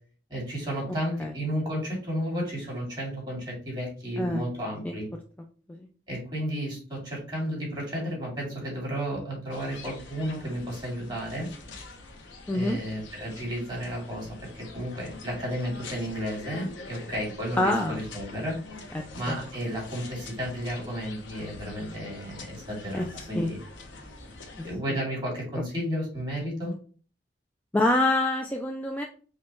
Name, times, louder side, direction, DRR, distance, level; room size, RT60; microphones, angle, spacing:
voice 1, 0.3-5.1 6.1-11.5 12.5-18.6 19.1-23.6 24.6-26.7, equal, 25° right, -3 dB, 2.4 m, -33 dB
sound 1, 9.5-24.7, left 3 dB, 90° left, 0.9 m, -45 dB
voice 2, 12.5-12.8 17.6-18.0 18.9-19.4 22.9-23.1 23.3-23.5 27.7-29.0, left 1 dB, 10° left, 1 dB, 0.4 m, -26 dB
5.1 x 2.3 x 4.3 m, 0.41 s
head